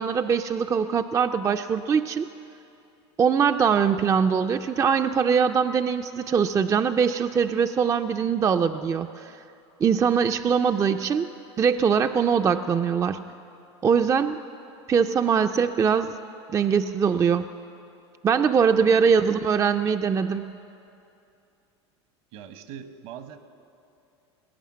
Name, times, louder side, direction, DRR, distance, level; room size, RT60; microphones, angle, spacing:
voice 1, 0.0-2.3 3.2-9.3 9.8-11.3 11.6-13.2 13.8-14.4 14.9-16.2 16.5-17.5 18.2-20.6, right 6 dB, 20° right, 8 dB, 0.4 m, -22 dB
voice 2, 18.6-19.0 22.3-23.4, right 8 dB, 65° right, 9 dB, 1.2 m, -42 dB
20.0 x 8.8 x 7.4 m, 2.7 s
hypercardioid pair, 100°, 15 cm